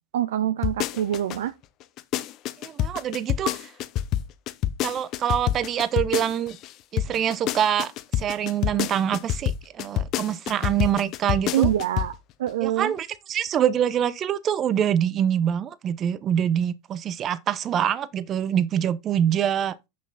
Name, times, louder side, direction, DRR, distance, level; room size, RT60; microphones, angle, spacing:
voice 1, 0.1-1.5 11.5-12.9, right 12 dB, 65° right, 0.6 m, -25 dB
sound 1, 0.6-1.4 1.8-6.7 7.0-12.2 12.5-12.6, left 12 dB, 40° left, 0.9 m, -27 dB
voice 2, 2.6-3.7 4.8-6.6 6.9-11.7 12.6-19.8, right 9 dB, 30° right, 0.8 m, -25 dB
8.4 x 6.1 x 4.0 m
hypercardioid pair, 95°, 0 cm